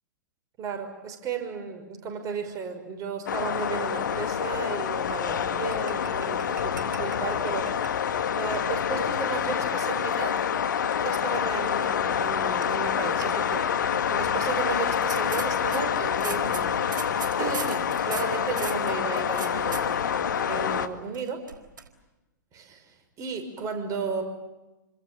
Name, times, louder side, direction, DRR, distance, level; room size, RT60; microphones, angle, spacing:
voice 1, 0.6-7.7 8.4-10.4 11.0-13.8 14.1-16.8 17.4-21.4 22.5-24.2, right 5 dB, 30° right, 5 dB, 6.0 m, -34 dB
sound 1, 3.3-20.9, left 8 dB, 70° left, 2.0 m, -27 dB
sound 2, 5.7-8.0 8.3-8.5 9.1-10.6 10.9-11.1 11.7-12.1 12.6-12.7 13.0-13.3 13.9-14.3 14.9-19.8 21.1-21.9, right 6 dB, 75° right, 4.3 m, -40 dB
29.0 x 26.0 x 7.0 m, 1.1 s
figure-of-eight pair, 105°, 11 cm